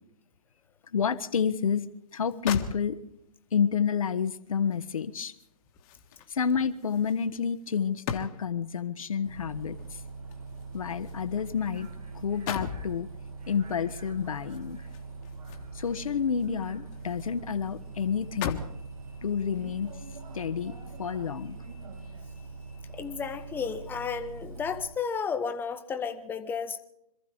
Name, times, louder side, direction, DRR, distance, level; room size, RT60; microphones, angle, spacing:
voice 1, 0.9-3.0 3.5-5.3 6.3-10.0 10.7-11.9 12.1-13.1 13.5-14.8 15.7-18.6 19.2-19.9 20.3-21.6, left 7 dB, 65° left, 10 dB, 1.3 m, -29 dB
sound 1, 2.1-2.2 2.5-3.3 4.7-8.7 9.8-11.9 12.2-12.9 14.4-16.0 16.4-17.4 17.7-17.8 18.2-18.9 19.6-19.7, left 7 dB, 30° left, 1.6 m, -39 dB
Bus, 9.2-24.9, right 3 dB, 75° right, 5.6 m, -43 dB
voice 2, 22.9-26.8, left 6 dB, 10° left, 8 dB, 1.2 m, -33 dB
26.5 x 14.5 x 3.5 m, 0.81 s
figure-of-eight pair, 130°, 19 cm